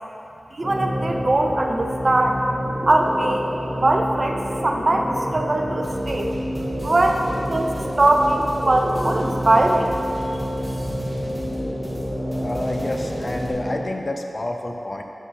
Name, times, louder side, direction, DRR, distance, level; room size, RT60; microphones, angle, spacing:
voice 1, 0.5-2.4 2.9-6.4 6.8-9.9, right 2 dB, 50° right, 2 dB, 0.5 m, -21 dB
sound 1, 0.6-13.8, equal, 5° right, 1.3 m, -28 dB
sound 2, 5.8-13.5, right 1 dB, 25° right, 1.4 m, -36 dB
voice 2, 12.4-15.0, left 1 dB, 40° left, 3 dB, 0.5 m, -29 dB
7.6 x 5.5 x 3.3 m, 2.7 s
wide cardioid pair, 85°, 0 cm